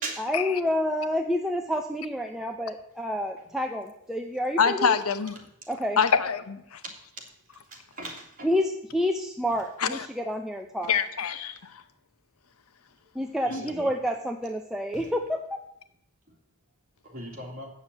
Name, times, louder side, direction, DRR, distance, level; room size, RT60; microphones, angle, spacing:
voice 1, 0.2-4.9 5.7-6.0 8.4-10.9 13.1-15.6, left 1 dB, ahead, 2 dB, 0.6 m, -29 dB
voice 2, 4.6-5.4 6.0-6.8 9.8-10.1 10.9-11.8 13.5-13.6, left 6 dB, 75° left, 12 dB, 0.8 m, -25 dB
voice 3, 7.7-8.5 13.5-13.9 14.9-15.1 17.0-17.7, right 2 dB, 40° right, -1 dB, 2.8 m, -38 dB
8.3 x 7.0 x 8.2 m, 0.77 s
head